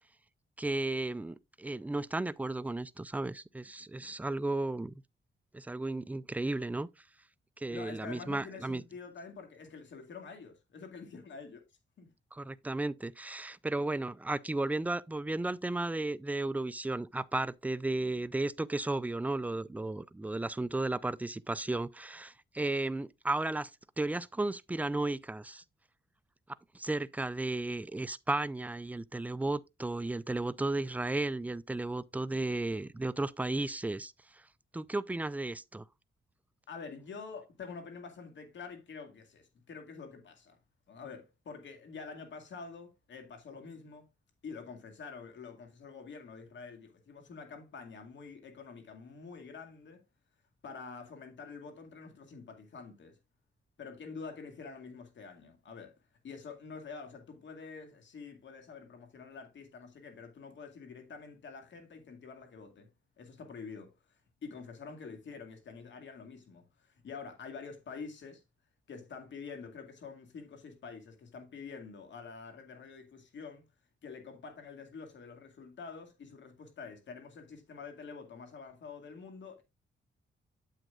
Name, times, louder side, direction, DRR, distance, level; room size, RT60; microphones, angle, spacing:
voice 1, 0.6-4.9 5.5-6.9 7.6-8.8 12.3-23.7 24.0-25.6 26.7-34.4 34.7-35.9, right 2 dB, 10° right, 0.4 m, -34 dB
voice 2, 7.7-11.6 12.0-12.1 36.7-40.6 40.9-44.1 44.4-50.0 50.6-53.2 53.8-55.9 56.2-62.9 63.2-63.9 64.4-68.4 68.9-73.6 74.0-79.6, left 5 dB, 70° left, 2.2 m, -47 dB
9.1 x 7.6 x 2.4 m
cardioid pair, 80°, 20 cm